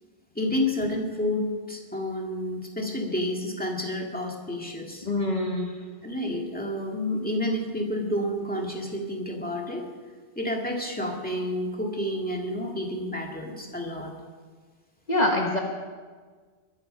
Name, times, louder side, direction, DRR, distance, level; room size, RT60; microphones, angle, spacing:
voice 1, 0.4-5.1 6.0-9.9 10.4-14.1, left 1 dB, 10° left, 0 dB, 2.2 m, -30 dB
voice 2, 5.0-5.8 15.1-15.6, left 1 dB, 45° left, 1 dB, 1.4 m, -25 dB
22.5 x 9.6 x 5.6 m, 1.5 s
omnidirectional pair, 1.1 m